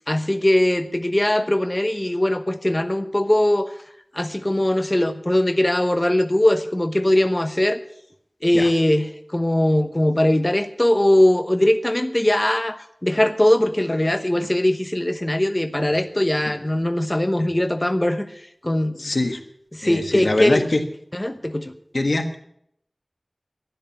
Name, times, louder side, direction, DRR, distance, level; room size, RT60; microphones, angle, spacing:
voice 1, 0.1-3.7 4.1-7.8 8.4-19.0 19.7-20.6 21.1-21.7, left 1 dB, 30° left, 8 dB, 1.0 m, -20 dB
voice 2, 19.0-19.4 19.8-20.8 21.9-22.4, left 2 dB, 90° left, 6 dB, 1.5 m, -23 dB
12.5 x 10.5 x 8.4 m, 0.71 s
wide cardioid pair, 45°, 0 cm